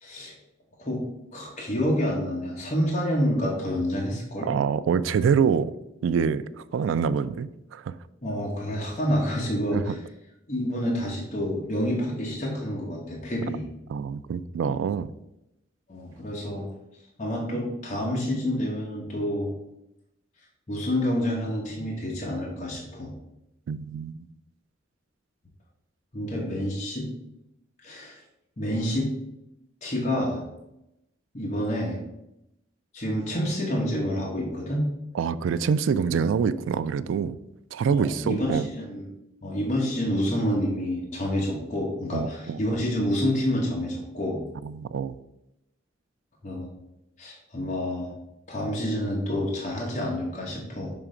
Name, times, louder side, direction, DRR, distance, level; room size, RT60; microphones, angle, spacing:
voice 1, 0.0-0.3 0.8-1.0 1.3-4.5 8.2-10.0 10.5-13.6 15.9-16.7 17.2-19.5 20.7-23.1 26.1-27.1 27.8-28.2 28.6-29.1 29.8-30.4 31.3-32.0 32.9-34.9 37.9-39.1 39.4-44.4 46.4-46.7 47.2-48.1 48.5-50.9, equal, 40° left, 1.1 m, -28 dB
voice 2, 4.5-5.7 6.0-7.9 9.7-9.8 13.9-15.1 23.7-24.1 35.1-37.4 37.7-38.7 42.1-42.6 44.6-45.1, right 6 dB, 85° right, 0.3 m, -25 dB
6.0 x 3.3 x 5.0 m
head